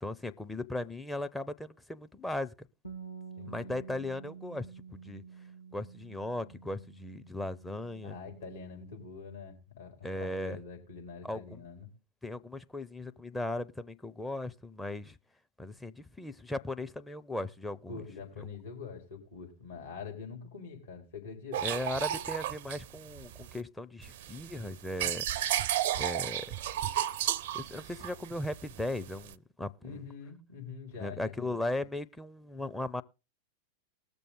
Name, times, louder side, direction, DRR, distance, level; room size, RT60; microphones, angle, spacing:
voice 1, 0.0-2.7 3.4-4.7 4.9-5.2 5.7-8.2 10.0-10.6 11.2-11.6 12.2-15.2 15.6-18.0 21.6-25.2 26.0-26.5 27.5-30.0 31.0-33.0, left 1 dB, 5° left, 0.6 m, -37 dB
Bass guitar, 2.8-9.1, right 6 dB, 85° left, 1.4 m, -49 dB
voice 2, 3.4-3.7 8.0-11.9 17.9-21.6 29.8-31.6, left 5 dB, 70° left, 4.8 m, -45 dB
Pouring glasses of wine slight distance, 21.5-23.6 24.0-29.3, right 11 dB, 55° right, 0.5 m, -33 dB
20.0 x 6.8 x 3.7 m
figure-of-eight pair, 90°, 0 cm